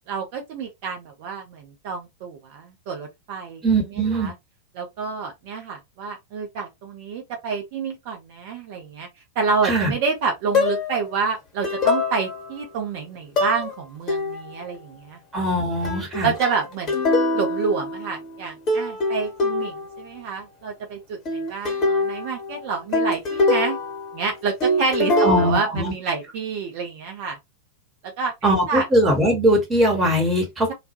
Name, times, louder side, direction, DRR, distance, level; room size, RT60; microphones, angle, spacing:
voice 1, 0.1-4.3 4.7-9.1 9.4-15.4 16.2-17.0 17.3-23.8 24.1-27.4 28.2-28.9, right 5 dB, 50° right, 0.6 m, -28 dB
voice 2, 3.6-4.3 9.6-9.9 15.3-16.3 25.2-25.9 28.4-30.7, right 1 dB, 15° right, 1.0 m, -20 dB
sound 1, 10.5-11.0 11.6-12.6 13.4-13.7 14.1-14.6 15.8-18.4 18.7-20.1 21.2-24.3 24.6-25.5, left 2 dB, 30° left, 1.0 m, -24 dB
2.2 x 2.0 x 2.8 m
figure-of-eight pair, 90°, 0 cm